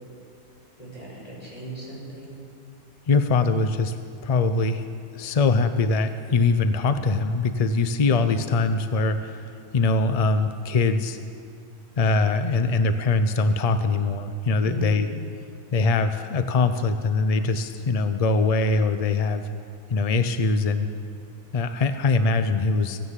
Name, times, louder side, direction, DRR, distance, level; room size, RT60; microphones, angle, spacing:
voice 1, 0.8-2.4 8.1-8.3 14.6-15.0, right 2 dB, 25° left, -6 dB, 4.9 m, -37 dB
voice 2, 3.1-4.0 4.2-4.8 5.1-9.4 9.7-11.2 12.0-15.1 15.7-19.5 19.9-20.9 21.5-23.0, left 3 dB, 65° left, 9 dB, 0.3 m, -22 dB
16.0 x 9.7 x 7.4 m, 2.4 s
omnidirectional pair, 1.5 m